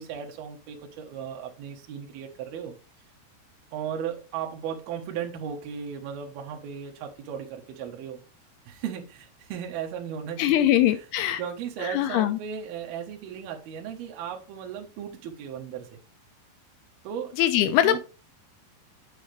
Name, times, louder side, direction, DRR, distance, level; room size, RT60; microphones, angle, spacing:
voice 1, 0.0-2.7 3.7-8.2 8.7-10.7 10.9-11.1 11.4-16.0 17.0-17.4 17.8-18.0, right 8 dB, 65° right, 3.0 m, -36 dB
voice 2, 10.4-11.4 11.8-12.4 17.4-18.0, left 12 dB, 80° left, 2.4 m, -22 dB
8.6 x 6.4 x 3.4 m
omnidirectional pair, 5.1 m